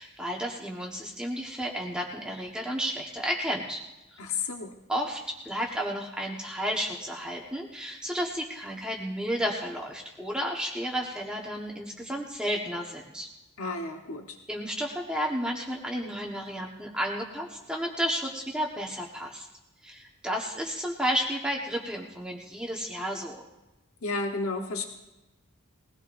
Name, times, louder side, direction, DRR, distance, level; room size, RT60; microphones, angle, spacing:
voice 1, 0.0-3.8 4.1-4.2 4.9-13.3 14.5-19.5 19.8-23.4, equal, 5° right, -1 dB, 1.3 m, -32 dB
voice 2, 4.2-4.7 13.6-14.4 24.0-24.8, left 3 dB, 80° left, 4 dB, 1.2 m, -32 dB
21.0 x 17.5 x 2.6 m, 1.0 s
head